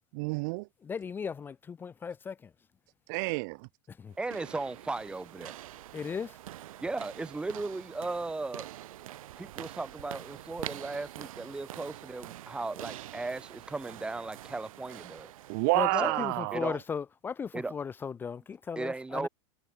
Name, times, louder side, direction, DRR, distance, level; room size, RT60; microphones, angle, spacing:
voice 1, 0.1-0.7 3.1-3.6 15.5-16.6, right 31 dB, 35° right, 0.4 m, -29 dB
voice 2, 0.8-2.5 3.9-4.1 5.9-6.4 15.7-19.3, left 6 dB, 10° left, 0.8 m, -36 dB
sound 1, 4.1-16.0, right 13 dB, 75° right, 2.1 m, -46 dB
voice 3, 4.2-5.6 6.8-8.7 9.4-15.3 16.0-16.8 17.5-17.7 18.8-19.3, right 3 dB, 5° right, 2.1 m, -36 dB
supercardioid pair, 165°, 18 cm